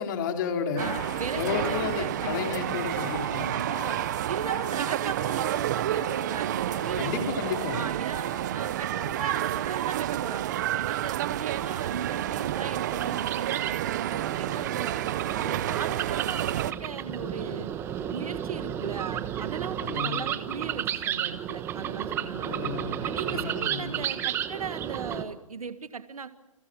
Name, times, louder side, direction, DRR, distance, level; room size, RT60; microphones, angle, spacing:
voice 1, 0.0-0.9 1.3-3.7 7.0-7.8 19.8-20.3 22.4-24.0, left 5 dB, 35° left, 4 dB, 4.1 m, -32 dB
sound 1, 0.8-9.4, left 14 dB, 15° left, 1.1 m, -43 dB
sound 2, 0.8-16.7, right 13 dB, 30° right, 0.8 m, -30 dB
voice 2, 0.8-2.9 3.5-4.0 4.3-7.2 7.7-8.3 8.5-15.0 15.4-17.7 18.1-22.6 23.0-26.3, right 5 dB, 85° right, 11 dB, 1.7 m, -37 dB
sound 3, 10.8-25.2, right 10 dB, 15° right, 1.2 m, -33 dB
29.5 x 23.5 x 6.3 m, 1.0 s
hypercardioid pair, 155°, 18 cm